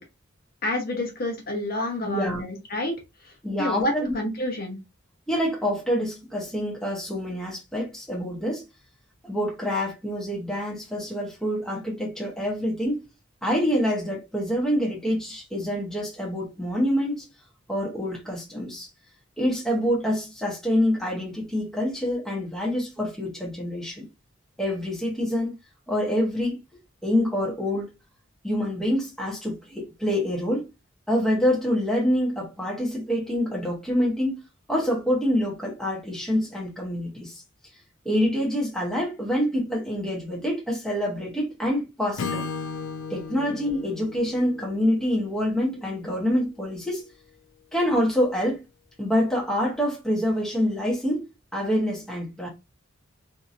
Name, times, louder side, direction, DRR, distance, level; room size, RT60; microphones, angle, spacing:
voice 1, 0.6-2.9 3.2-3.3 3.6-4.8, left 1 dB, 50° left, 1.0 m, -28 dB
voice 2, 2.0-2.5 3.4-4.2 5.3-8.6 9.2-13.0 13.4-17.2 17.7-18.9 19.4-24.0 24.6-25.5 25.9-26.6 27.0-27.9 28.4-30.7 31.1-34.4 34.7-37.4 38.0-42.5 43.1-47.0 47.7-48.6 49.0-52.5, equal, ahead, 1.0 m, -26 dB
Acoustic guitar / Strum, 42.2-46.1, left 5 dB, 75° left, 0.4 m, -36 dB
2.8 x 2.7 x 2.5 m
head